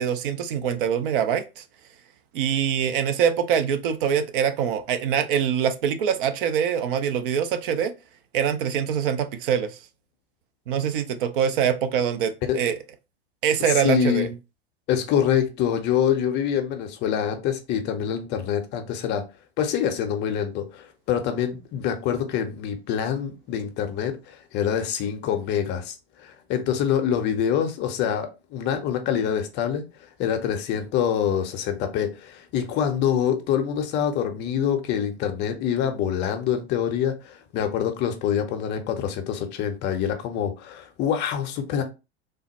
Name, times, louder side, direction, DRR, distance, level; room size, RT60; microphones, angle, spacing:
voice 1, 0.0-1.6 2.3-7.9 8.3-9.8 10.7-12.7 13.4-14.3, right 8 dB, 55° right, 0.5 m, -24 dB
voice 2, 13.7-14.3 14.9-19.2 19.6-29.8 30.2-41.8, left 9 dB, 35° left, 0.6 m, -25 dB
3.3 x 2.0 x 2.9 m
figure-of-eight pair, 85°, 32 cm